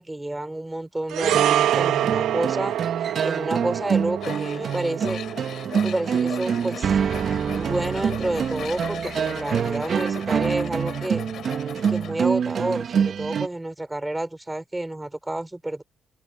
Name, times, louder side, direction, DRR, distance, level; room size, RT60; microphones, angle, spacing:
voice 1, 0.0-2.8 3.2-5.2 5.8-7.0 7.3-11.2 11.9-15.8, right 1 dB, 10° right, 5.4 m, -29 dB
sound 1, 1.1-9.6 9.8-10.0, right 11 dB, 85° right, 1.6 m, -28 dB
sound 2, 1.2-13.5, right 7 dB, 55° right, 1.8 m, -26 dB
Tools, 4.2-12.1, left 9 dB, 65° left, 5.0 m, -39 dB
cardioid pair, 90°, 0 cm